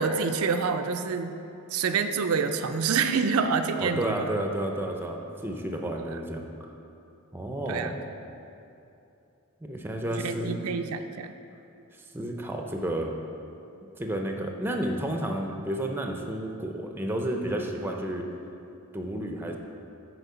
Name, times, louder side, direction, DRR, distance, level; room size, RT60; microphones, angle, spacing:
voice 1, 0.0-1.4 1.7-4.3 6.0-6.2 7.7-7.9 10.2-11.3, right 5 dB, 85° right, 7 dB, 0.4 m, -27 dB
voice 2, 3.8-6.5 7.3-8.0 9.6-10.7 12.1-13.2 14.0-18.3 18.9-19.6, right 1 dB, 10° right, 2 dB, 0.5 m, -31 dB
8.2 x 4.5 x 5.6 m, 2.8 s
head